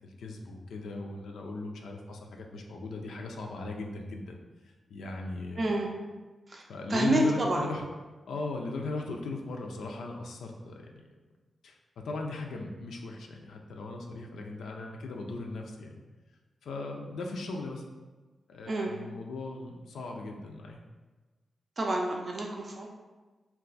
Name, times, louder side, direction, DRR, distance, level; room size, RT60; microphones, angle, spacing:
voice 1, 0.0-4.4 4.9-5.8 6.7-7.8 8.3-11.0 11.6-11.8 12.0-16.0 16.6-17.8 18.5-20.8, left 3 dB, 85° left, 2 dB, 0.3 m, -38 dB
voice 2, 5.6-5.9 6.5-6.6 6.9-7.7 18.7-18.9 21.8-22.9, right 1 dB, 45° right, 0 dB, 0.4 m, -28 dB
2.3 x 2.3 x 3.8 m, 1.3 s
cardioid pair, 50°, 0 cm